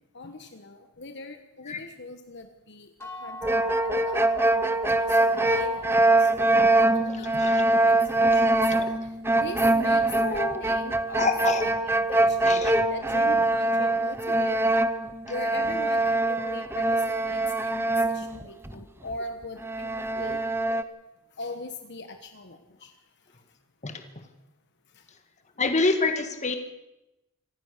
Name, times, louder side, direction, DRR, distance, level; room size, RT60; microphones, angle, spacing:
voice 1, 0.1-11.3 11.6-14.7 15.2-20.4 21.3-22.9 24.9-25.0 25.6-25.8, left 3 dB, 50° left, 7 dB, 1.3 m, -41 dB
sound 1, 3.0-8.8, equal, 10° left, 3.6 m, -45 dB
sound 2, 3.4-18.8 19.1-19.2 19.6-20.8, right 2 dB, 10° right, 0.7 m, -23 dB
voice 2, 7.1-7.6 8.7-8.9 10.1-10.6 11.2-11.6 12.4-12.8 18.7-18.8 20.2-20.4 20.7-20.8 23.8-24.0 25.6-26.6, left 3 dB, 30° left, 7 dB, 1.9 m, -28 dB
26.0 x 15.5 x 6.7 m, 0.97 s
head